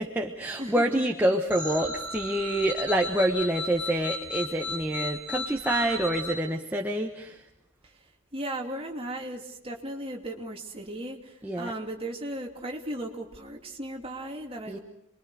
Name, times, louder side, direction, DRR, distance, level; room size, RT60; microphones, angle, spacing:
voice 1, 0.0-7.4 11.4-11.7 14.7-14.8, right 1 dB, 10° right, 1 dB, 1.2 m, -27 dB
voice 2, 0.6-1.1 7.8-14.8, right 1 dB, 25° right, 1 dB, 2.8 m, -36 dB
sound 1, 1.5-6.3, left 2 dB, 20° left, 7.3 m, -34 dB
28.5 x 22.5 x 6.4 m, 0.78 s
head